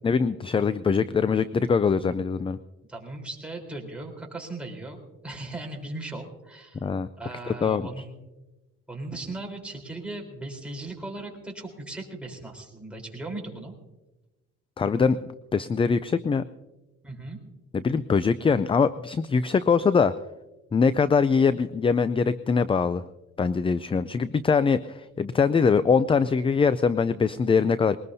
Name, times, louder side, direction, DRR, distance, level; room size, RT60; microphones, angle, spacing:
voice 1, 0.0-2.6 6.8-7.1 7.5-7.9 14.8-16.4 17.7-20.1 20.7-23.0 23.4-28.0, left 5 dB, 20° left, 15 dB, 0.4 m, -23 dB
voice 2, 2.9-6.9 7.2-8.1 8.9-13.7 17.0-17.4, right 2 dB, 5° right, 0 dB, 3.9 m, -38 dB
21.5 x 19.0 x 2.7 m, 1.1 s
cardioid pair, 100°, 30 cm